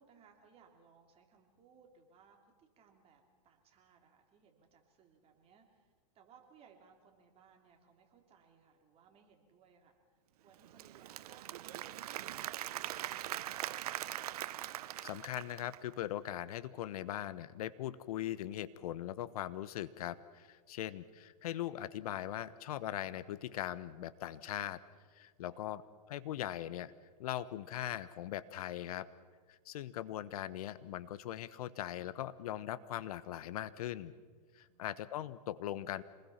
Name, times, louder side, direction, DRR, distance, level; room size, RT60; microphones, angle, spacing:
voice 1, 0.0-13.7 25.4-25.7 34.7-35.1, right 6 dB, 30° right, 2 dB, 3.5 m, -65 dB
Applause / Crowd, 10.5-15.9, right 13 dB, 65° right, 0.7 m, -42 dB
voice 2, 15.0-24.8 25.1-25.8 26.1-26.9 27.2-29.1 29.5-34.1 34.5-36.0, left 12 dB, 65° left, 15 dB, 1.1 m, -40 dB
27.0 x 20.5 x 5.8 m, 1.5 s
hypercardioid pair, 125°, 21 cm